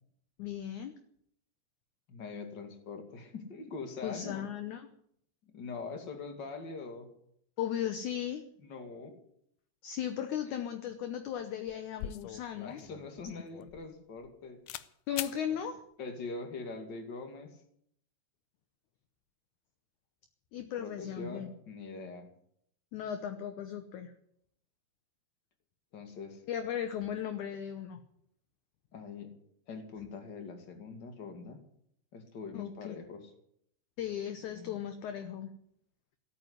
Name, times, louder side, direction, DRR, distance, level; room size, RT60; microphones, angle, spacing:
voice 1, 0.4-0.9 4.0-4.8 7.6-8.4 9.8-12.8 15.1-15.8 20.5-21.5 22.9-24.1 26.5-28.0 30.0-30.1 32.5-33.0 34.0-35.5, left 9 dB, 70° left, 9 dB, 1.9 m, -36 dB
voice 2, 2.1-4.5 5.5-7.1 8.6-9.2 10.5-10.6 12.6-14.6 15.5-15.6 16.0-17.6 20.8-22.3 25.9-26.4 28.9-29.3 29.7-31.6 32.1-33.3 34.5-34.8, left 4 dB, 35° left, 5 dB, 2.2 m, -43 dB
sound 1, 11.3-11.4 11.7-14.3 14.7-14.9 15.2-15.4, left 12 dB, 90° left, 1.8 m, -42 dB
16.5 x 9.0 x 9.5 m, 0.70 s
omnidirectional pair, 4.6 m